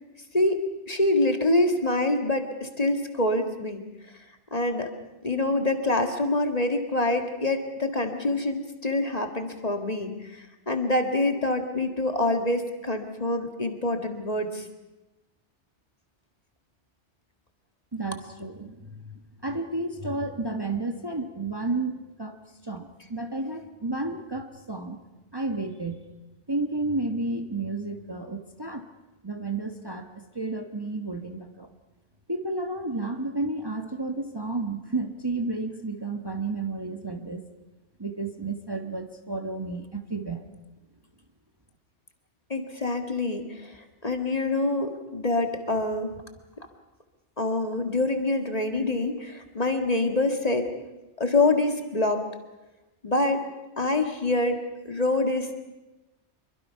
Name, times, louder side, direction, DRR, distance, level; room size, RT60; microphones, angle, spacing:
voice 1, 0.3-3.8 4.5-4.9 5.2-14.6 42.5-43.8 44.0-46.1 47.4-50.7 51.2-52.2 53.0-53.4 53.8-55.6, left 2 dB, 35° left, 5 dB, 2.0 m, -26 dB
voice 2, 17.9-19.1 19.4-22.4 22.6-25.0 25.3-26.0 26.5-28.8 29.2-31.7 32.3-37.4 38.0-40.5, right 2 dB, 20° right, 5 dB, 1.3 m, -31 dB
25.5 x 23.5 x 5.8 m, 1.1 s
omnidirectional pair, 1.2 m